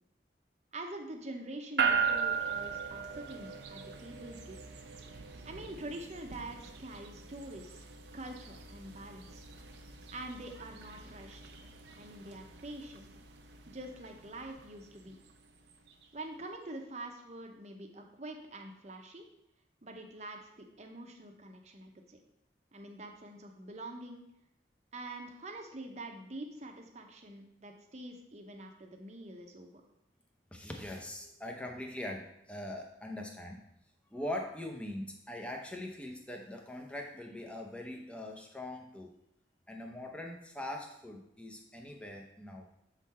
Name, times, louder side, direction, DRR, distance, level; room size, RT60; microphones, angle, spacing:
voice 1, 0.7-4.6 5.4-7.9 8.1-9.4 10.1-11.5 12.0-13.1 13.7-15.2 16.1-19.3 19.8-22.2 22.7-24.2 24.9-29.8, right 1 dB, 40° right, 3 dB, 0.8 m, -45 dB
sound 1, 1.8-16.1, right 6 dB, 80° right, 0.7 m, -39 dB
voice 2, 30.5-33.7 34.1-39.1 39.7-42.7, left 1 dB, 5° left, 1 dB, 0.7 m, -42 dB
7.3 x 3.8 x 4.2 m, 0.82 s
head